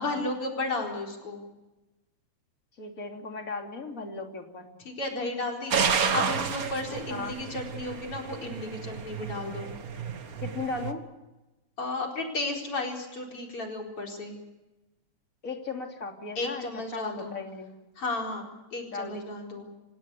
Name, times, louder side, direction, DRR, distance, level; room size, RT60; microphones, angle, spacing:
voice 1, 0.0-1.4 4.8-9.7 11.8-14.3 16.4-17.3 18.0-18.4 18.7-19.7, left 2 dB, 45° left, 0 dB, 5.2 m, -33 dB
voice 2, 2.8-4.8 7.1-7.3 10.4-11.0 15.4-16.6 16.9-17.7 18.9-19.2, left 4 dB, 30° left, 3 dB, 3.1 m, -36 dB
sound 1, 5.7-10.9, right 6 dB, 45° right, 1.2 m, -31 dB
27.5 x 17.0 x 8.5 m, 1.0 s
omnidirectional pair, 3.4 m